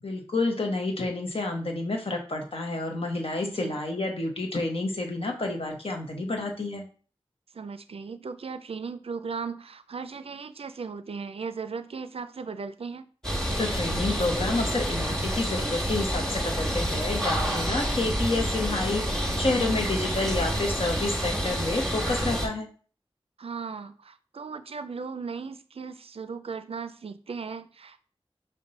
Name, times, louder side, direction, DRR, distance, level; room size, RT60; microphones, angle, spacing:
voice 1, 0.0-6.8 13.6-22.7, left 2 dB, 65° left, 1 dB, 0.9 m, -29 dB
voice 2, 3.5-3.8 7.5-13.1 23.4-28.0, right 5 dB, 70° right, 11 dB, 0.4 m, -37 dB
sound 1, 13.2-22.5, equal, 5° left, 1.2 m, -28 dB
5.2 x 2.1 x 4.0 m, 0.41 s
wide cardioid pair, 45°, 10 cm